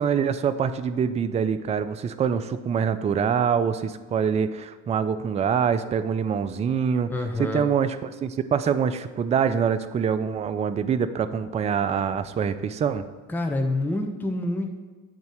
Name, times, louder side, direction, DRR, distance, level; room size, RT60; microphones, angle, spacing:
voice 1, 0.0-7.1 7.4-13.1, right 7 dB, 20° right, 12 dB, 0.4 m, -25 dB
voice 2, 7.1-7.6 13.3-14.7, left 2 dB, 5° left, 2 dB, 1.0 m, -27 dB
8.4 x 4.0 x 6.3 m, 1.4 s
hypercardioid pair, 75°, 37 cm